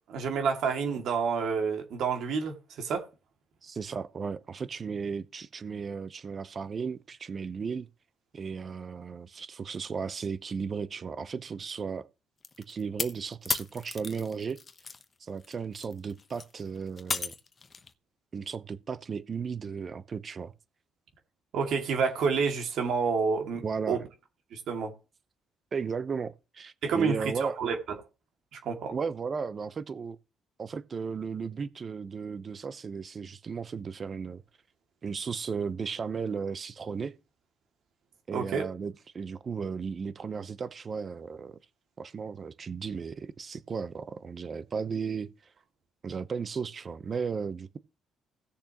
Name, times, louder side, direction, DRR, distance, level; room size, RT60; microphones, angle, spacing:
voice 1, 0.1-3.0 21.5-24.0 24.5-24.9 26.8-28.0 28.5-28.9 38.3-38.6, right 5 dB, 75° right, 2.3 m, -29 dB
voice 2, 3.6-7.9 8.3-12.1 12.7-14.6 15.2-17.3 18.3-20.5 23.6-24.0 25.7-27.6 28.9-30.2 30.6-34.4 35.0-37.2 38.3-41.6 42.0-45.3 46.0-47.8, right 5 dB, 40° right, 0.8 m, -35 dB
sound 1, 12.4-15.0 15.4-17.9, left 4 dB, 35° left, 1.0 m, -35 dB
17.5 x 6.7 x 3.0 m
cardioid pair, 100°, 0 cm